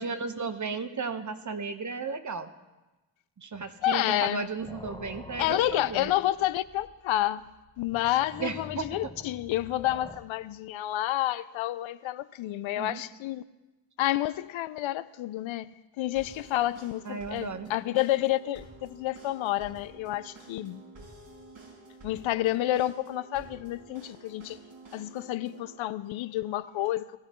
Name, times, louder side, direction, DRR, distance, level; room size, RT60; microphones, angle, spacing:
voice 1, 0.0-2.5 3.4-6.1 8.4-8.9 12.8-13.0 17.0-17.7, right 4 dB, 40° right, 1.1 m, -34 dB
sound 1, 3.5-4.0 4.3-10.2, left 2 dB, 10° left, 1.2 m, -47 dB
voice 2, 3.8-4.5 5.4-7.5 7.8-13.4 14.0-20.8 22.0-24.6 24.9-27.2, left 14 dB, 80° left, 0.6 m, -29 dB
sound 2, 16.2-25.8, right 2 dB, 70° right, 6.1 m, -50 dB
20.0 x 14.0 x 3.1 m
cardioid pair, 70°, 47 cm